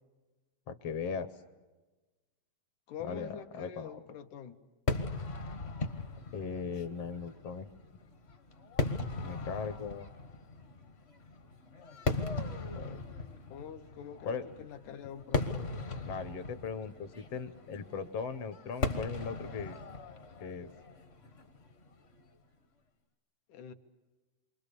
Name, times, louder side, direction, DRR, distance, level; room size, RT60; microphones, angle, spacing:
voice 1, 0.7-1.3 3.0-4.0 6.3-7.7 9.2-10.1 12.7-13.0 14.2-14.5 16.1-19.8 20.4-20.7, left 5 dB, 65° left, 10 dB, 1.9 m, -38 dB
voice 2, 2.9-4.6 13.5-15.7 23.5-23.7, left 8 dB, 90° left, 6 dB, 2.6 m, -45 dB
Fireworks, 4.9-22.2, left 3 dB, 45° left, 0.8 m, -38 dB
28.0 x 25.0 x 6.8 m, 1.2 s
omnidirectional pair, 3.3 m